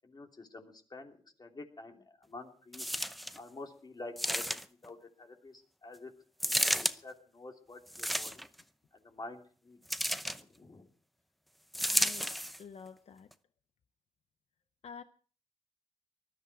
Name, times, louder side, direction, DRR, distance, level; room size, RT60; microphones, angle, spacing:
voice 1, 0.0-2.9 3.4-6.1 6.4-8.5 8.9-9.8 10.3-10.9, left 2 dB, 40° left, 3.1 m, -49 dB
sound 1, 2.7-3.4 4.2-4.9 6.4-7.0 7.9-8.6 9.9-10.4 11.7-12.6 13.3-13.4, equal, ahead, 0.7 m, -32 dB
voice 2, 11.8-12.3 12.6-13.3 14.8-15.0, left 6 dB, 75° left, 0.7 m, -48 dB
20.0 x 13.0 x 4.9 m
wide cardioid pair, 105°, 11 cm